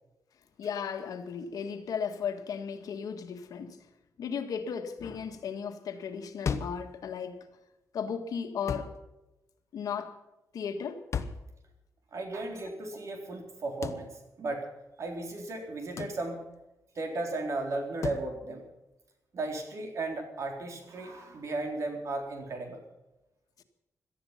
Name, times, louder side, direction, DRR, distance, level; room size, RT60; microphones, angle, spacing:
voice 1, 0.6-3.8 4.2-7.5 7.9-9.0 9.7-10.2 10.5-11.0 23.6-23.7, left 7 dB, 75° left, 1.7 m, -35 dB
sound 1, 6.5-6.9 8.7-9.0 11.1-11.5 13.8-14.1 16.0-16.2 18.0-18.3, left 6 dB, 50° left, 1.1 m, -33 dB
voice 2, 12.1-14.7 15.0-16.4 17.0-18.7 19.3-22.8, right 2 dB, 55° right, 3.9 m, -35 dB
18.0 x 13.0 x 5.8 m
wide cardioid pair, 140°, 6 cm